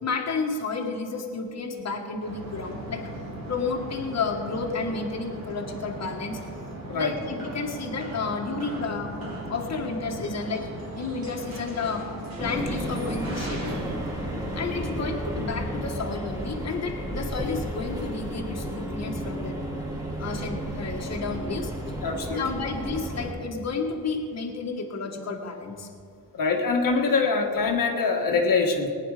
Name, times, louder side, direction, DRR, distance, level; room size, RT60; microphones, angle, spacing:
voice 1, 0.0-3.1 3.5-6.4 6.9-9.1 9.5-10.7 11.0-12.1 12.4-13.8 14.5-19.6 20.2-21.7 22.3-25.9, left 4 dB, 45° left, 1 dB, 1.6 m, -31 dB
sound 1, 2.2-14.9, right 1 dB, 80° right, 3.4 m, -38 dB
sound 2, 12.4-23.3, right 1 dB, 10° right, 2.6 m, -33 dB
voice 2, 22.0-22.6 26.3-28.9, left 4 dB, 65° left, 1 dB, 1.6 m, -24 dB
19.5 x 9.7 x 4.9 m, 2.3 s
wide cardioid pair, 120°, 36 cm